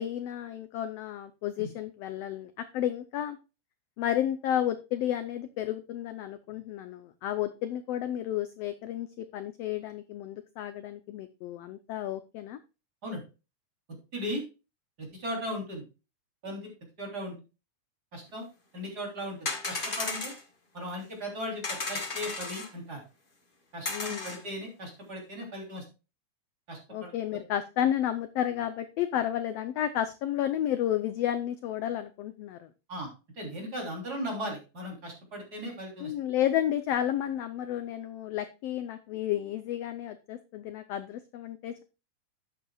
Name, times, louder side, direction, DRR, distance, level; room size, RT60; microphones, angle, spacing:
voice 1, 0.0-3.4 4.0-12.6 23.9-24.3 26.9-32.7 36.0-41.8, left 11 dB, 80° left, 10 dB, 1.4 m, -32 dB
voice 2, 15.0-15.8 16.4-16.7 17.0-17.4 18.1-18.5 18.7-20.3 20.7-23.0 23.7-25.8 26.7-27.1 32.9-33.1 33.4-36.1, equal, 30° right, 0 dB, 3.7 m, -37 dB
sound 1, 19.4-20.4 21.6-22.7 23.8-24.4, left 3 dB, 45° left, 0.6 m, -34 dB
11.5 x 8.8 x 2.3 m, 0.30 s
omnidirectional pair, 3.5 m